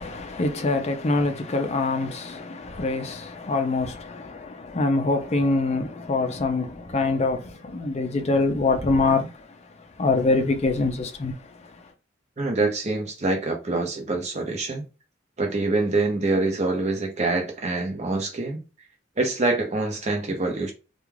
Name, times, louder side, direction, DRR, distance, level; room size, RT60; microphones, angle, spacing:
voice 1, 0.0-9.3 10.0-11.4, left 3 dB, 35° left, 0.4 m, -24 dB
voice 2, 12.4-14.8 15.4-18.6 19.2-20.7, right 2 dB, 35° right, 0.7 m, -25 dB
2.3 x 2.3 x 3.1 m
head